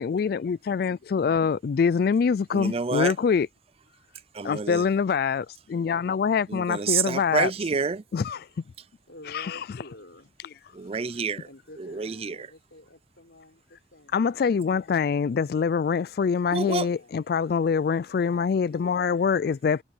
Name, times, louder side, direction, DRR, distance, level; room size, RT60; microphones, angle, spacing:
voice 1, 0.0-3.5 4.4-7.5 8.1-8.5 9.3-9.6 14.1-19.8, left 6 dB, 55° left, 0.3 m, -25 dB
voice 2, 2.5-3.1 4.3-4.8 6.5-8.0 10.7-11.5 11.8-12.4 16.5-16.9, right 5 dB, 35° right, 0.4 m, -28 dB
voice 3, 8.8-10.3 11.4-14.5 14.9-15.0 15.2-15.6 16.8-17.1, left 1 dB, 80° left, 4.8 m, -50 dB
head